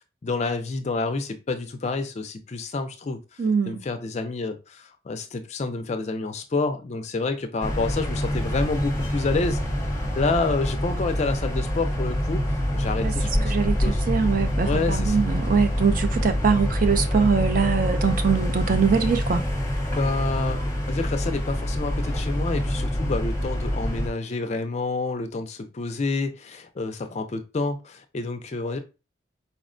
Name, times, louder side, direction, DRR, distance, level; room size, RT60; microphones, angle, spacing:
voice 1, 0.2-3.2 3.7-9.6 10.2-12.4 12.7-13.5 13.8-14.0 14.6-15.2 20.0-28.8, left 3 dB, 35° left, 0.4 m, -28 dB
voice 2, 3.4-3.8 13.0-13.1 13.4-19.4, right 5 dB, 45° right, 0.3 m, -23 dB
sound 1, 7.6-24.1, equal, 15° left, 0.7 m, -26 dB
4.2 x 2.1 x 2.4 m
head